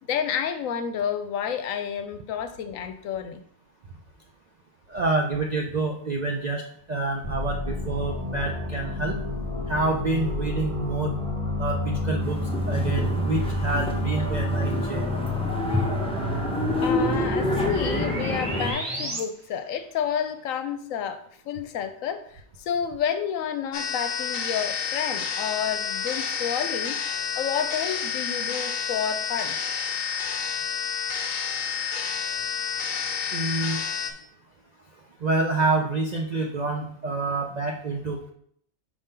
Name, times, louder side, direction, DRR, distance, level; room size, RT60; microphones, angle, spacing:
voice 1, 0.1-3.4 16.8-27.0 27.4-29.6, left 8 dB, 75° left, 1.0 m, -30 dB
voice 2, 4.9-6.6 6.9-9.2 9.7-11.1 11.6-12.4 12.7-15.1 33.3-33.8 35.2-38.3, right 3 dB, 60° right, 0.4 m, -27 dB
sound 1, 7.2-19.2, left 1 dB, 25° right, 0.9 m, -29 dB
sound 2, 12.2-18.7, left 1 dB, 5° left, 0.5 m, -28 dB
sound 3, 23.7-34.1, left 6 dB, 45° left, 0.7 m, -29 dB
4.9 x 3.7 x 5.5 m
omnidirectional pair, 1.4 m